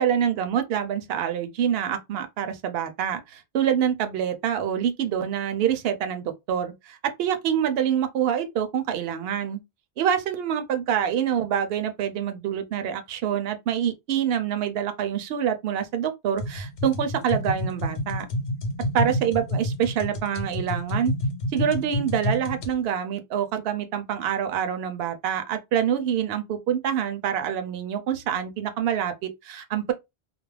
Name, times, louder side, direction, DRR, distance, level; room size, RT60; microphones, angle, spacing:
voice 1, 0.0-9.6 10.0-18.3 18.9-21.1 21.5-29.9, right 9 dB, 70° right, 0.7 m, -26 dB
sound 1, 16.4-22.7, left 1 dB, 90° left, 1.0 m, -29 dB
2.3 x 2.0 x 3.1 m
omnidirectional pair, 1.1 m